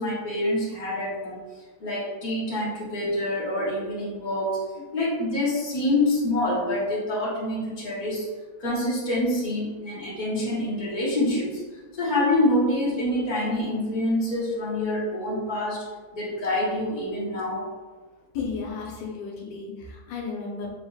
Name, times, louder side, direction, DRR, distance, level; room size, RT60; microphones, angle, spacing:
voice 1, 0.0-1.4 1.8-8.3 8.6-11.6 11.9-17.7, left 1 dB, 50° left, -7 dB, 0.5 m, -26 dB
voice 2, 18.3-20.7, left 5 dB, 70° left, -1 dB, 1.5 m, -33 dB
4.7 x 3.9 x 2.3 m, 1.3 s
omnidirectional pair, 2.1 m